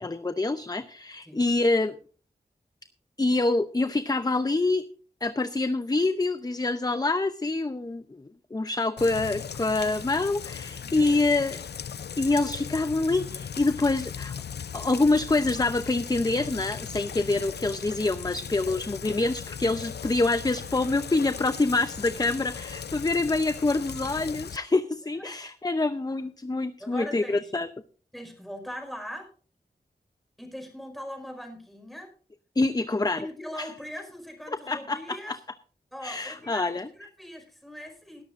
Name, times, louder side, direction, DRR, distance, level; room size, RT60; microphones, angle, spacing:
voice 1, 0.0-2.0 3.2-4.8 5.2-11.6 12.2-14.3 14.7-27.7 32.6-33.3 33.6-33.7 34.5-35.4 36.0-36.9, left 2 dB, 25° left, 11 dB, 0.7 m, -26 dB
Rain, 9.0-24.6, left 7 dB, 80° left, 0.5 m, -38 dB
voice 2, 10.7-11.2 25.2-25.4 26.8-27.5 28.1-29.3 30.4-32.1 33.2-35.3 35.9-38.2, equal, ahead, 3 dB, 5.1 m, -41 dB
20.0 x 11.5 x 2.6 m, 0.41 s
wide cardioid pair, 85°, 17 cm